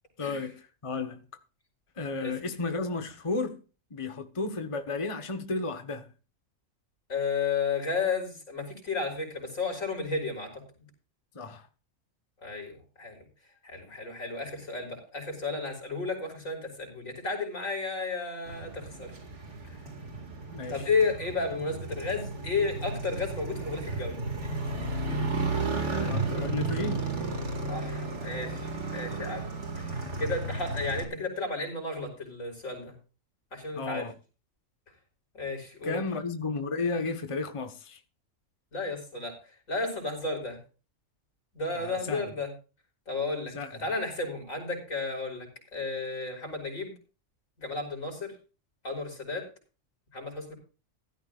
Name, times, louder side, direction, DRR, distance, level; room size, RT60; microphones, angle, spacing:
voice 1, 0.2-1.2 2.0-3.6 3.9-6.1 11.3-11.7 20.5-20.8 25.9-27.1 33.7-34.1 35.8-38.0 41.8-42.2 43.5-43.7, left 3 dB, 25° left, 1.3 m, -33 dB
voice 2, 7.1-10.6 12.4-13.2 13.6-19.1 20.7-24.2 27.7-29.5 29.8-32.9 33.5-34.1 35.3-36.0 38.7-39.4 39.7-40.6 41.5-42.5 43.1-46.9 47.6-48.3 48.8-49.5 50.1-50.5, left 3 dB, 75° left, 5.6 m, -33 dB
Motorcycle, 18.5-31.0, right 3 dB, 60° right, 2.6 m, -33 dB
16.5 x 14.0 x 2.5 m
omnidirectional pair, 1.4 m